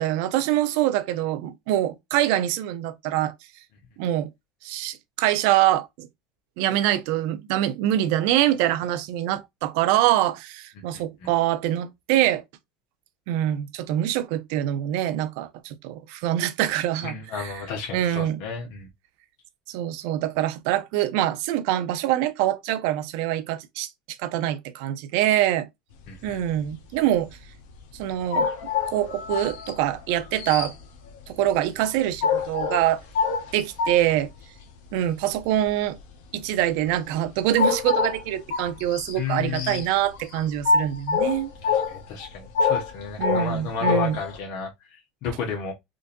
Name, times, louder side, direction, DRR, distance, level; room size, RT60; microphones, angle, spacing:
voice 1, 0.0-3.3 4.0-4.3 4.6-6.1 6.6-12.4 13.3-17.5 17.9-18.4 19.7-23.9 24.2-25.7 26.2-27.3 27.9-28.5 28.9-30.7 31.3-33.0 33.5-34.3 34.9-36.0 36.3-41.5 43.2-44.2, right 13 dB, 70° right, 0.5 m, -24 dB
voice 2, 10.9-11.3 17.0-18.9 26.1-26.4 39.1-39.8 41.6-45.7, left 6 dB, 60° left, 1.0 m, -33 dB
sound 1, 26.0-26.7 26.9-34.6 35.0-35.7 36.2-44.4, left 5 dB, 80° left, 0.8 m, -26 dB
3.7 x 2.5 x 2.6 m
supercardioid pair, 105°, 0 cm